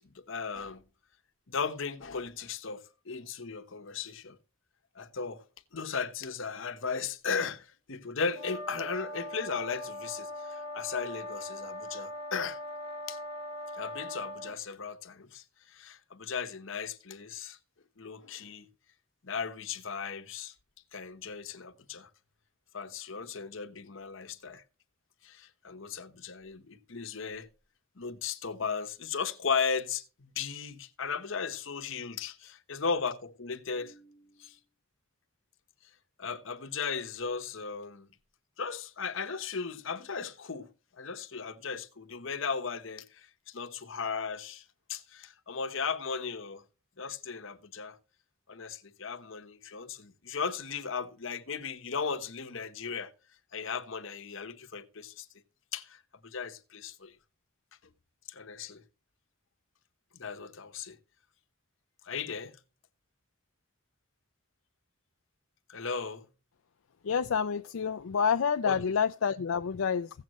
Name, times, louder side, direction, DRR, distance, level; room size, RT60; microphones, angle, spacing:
voice 1, 0.1-0.8 1.5-4.4 4.9-5.4 5.7-12.6 13.1-13.2 13.7-17.6 18.0-18.7 19.2-20.5 20.9-22.1 22.7-24.6 25.2-27.5 28.0-34.6 36.2-38.1 38.6-46.6 47.0-48.0 48.5-53.1 53.5-55.3 55.7-57.1 58.3-58.8 60.1-61.0 62.0-62.6 65.7-66.3 68.6-68.8, left 5 dB, 70° left, 1.0 m, -36 dB
sound 1, 8.3-14.6, left 1 dB, 25° right, 3.6 m, -40 dB
voice 2, 67.0-70.1, left 6 dB, 85° left, 0.4 m, -28 dB
16.0 x 7.6 x 3.0 m
head